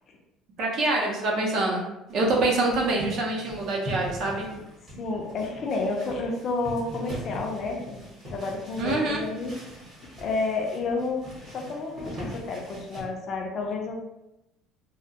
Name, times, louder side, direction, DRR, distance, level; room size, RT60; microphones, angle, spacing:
voice 1, 0.6-1.8 2.1-4.5 8.8-9.2, right 2 dB, 45° right, -2 dB, 0.5 m, -25 dB
sound 1, 2.1-13.0, equal, 25° right, 0.9 m, -41 dB
voice 2, 5.0-9.5 10.2-11.2 11.5-13.9, left 3 dB, 35° left, 1 dB, 0.4 m, -30 dB
2.3 x 2.1 x 2.7 m, 0.92 s
cardioid pair, 165°, 0 cm